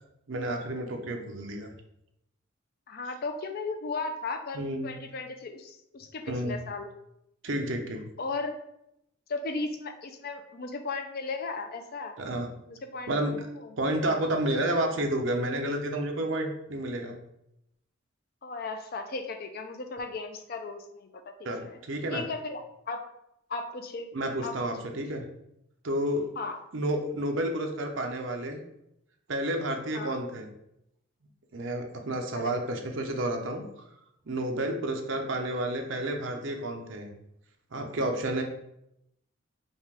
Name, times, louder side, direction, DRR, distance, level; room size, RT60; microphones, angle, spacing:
voice 1, 0.3-1.7 4.5-4.9 6.3-6.6 7.4-8.0 12.2-12.5 13.1-13.4 13.8-17.2 21.4-22.2 24.1-25.3 25.8-26.3 26.7-28.6 29.3-30.5 31.5-33.7 34.3-37.1 37.7-38.4, right 1 dB, 65° right, 3 dB, 0.7 m, -30 dB
voice 2, 2.9-6.9 8.2-8.6 9.3-12.2 12.7-13.7 18.4-21.2 21.6-21.8 22.1-22.6 22.9-23.0 23.5-24.1 24.4-24.6 24.8-25.0 26.4-26.6 29.9-30.2 32.3-32.6, left 3 dB, 50° left, 7 dB, 0.5 m, -36 dB
5.2 x 2.4 x 3.4 m, 0.81 s
head